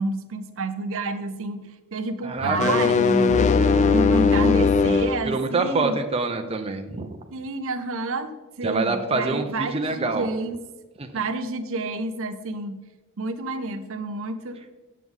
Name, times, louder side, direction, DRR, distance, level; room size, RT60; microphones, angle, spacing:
voice 1, 0.0-3.5 3.8-6.0 7.3-10.6 11.1-12.8 13.2-14.7, right 3 dB, 65° right, 10 dB, 0.6 m, -29 dB
voice 2, 2.2-2.9 5.3-7.2 8.6-10.3 11.0-11.1, right 3 dB, 25° right, 5 dB, 0.6 m, -26 dB
sound 1, 2.4-5.2, left 5 dB, 35° left, 0.4 m, -19 dB
8.0 x 7.4 x 3.6 m, 1.1 s
head